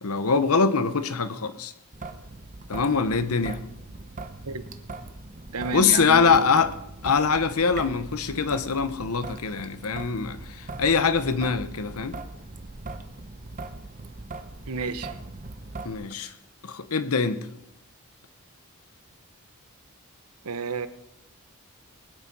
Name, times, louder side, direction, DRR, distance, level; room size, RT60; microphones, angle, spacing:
voice 1, 0.0-1.7 2.7-3.6 5.7-6.7 7.0-10.4 10.8-12.2 15.8-16.3 16.6-17.4, left 5 dB, 75° left, 0.9 m, -23 dB
Traffic noise roadway noise / Drip / Trickle dribble, 1.9-15.9, right 2 dB, 35° right, 0.9 m, -40 dB
voice 2, 5.5-6.5 14.7-15.2 20.4-20.9, right 4 dB, 90° right, 0.9 m, -31 dB
20.0 x 8.4 x 5.5 m
head